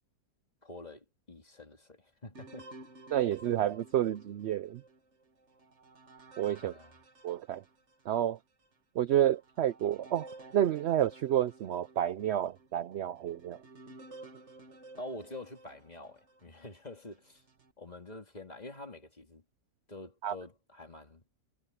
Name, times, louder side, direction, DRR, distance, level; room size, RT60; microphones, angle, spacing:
voice 1, 0.6-2.7 6.6-6.9 15.0-17.4 17.8-19.4 19.9-21.2, left 1 dB, 25° left, 2.5 m, -46 dB
sound 1, 2.3-8.1 8.6-8.7 9.3-16.5 17.1-17.7, right 2 dB, 45° right, 2.0 m, -54 dB
voice 2, 3.1-4.8 6.4-6.7 7.2-7.6 8.1-8.4 9.0-13.6 20.2-20.3, right 11 dB, 80° right, 0.6 m, -30 dB
omnidirectional pair, 1.7 m